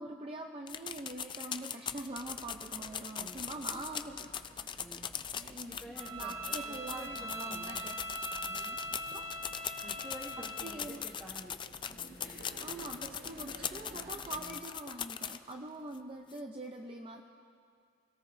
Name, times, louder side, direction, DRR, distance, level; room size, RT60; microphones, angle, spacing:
voice 1, 0.0-5.0 5.3-5.8 6.1-8.1 9.1-9.3 10.4-11.0 12.6-17.2, right 2 dB, 25° right, 2 dB, 0.6 m, -44 dB
sound 1, 0.7-15.5 15.9-16.0 16.3-16.4, left 8 dB, 25° left, 0.3 m, -40 dB
sound 2, 1.8-14.7, right 1 dB, 45° right, 1.2 m, -55 dB
voice 2, 3.2-4.1 4.8-5.2 5.7-7.8 8.5-8.8 9.8-11.5, right 1 dB, 5° right, -3 dB, 1.1 m, -50 dB
Bowed string instrument, 6.0-10.8, equal, 70° right, 1.6 m, -41 dB
27.5 x 17.5 x 2.7 m, 2.2 s
head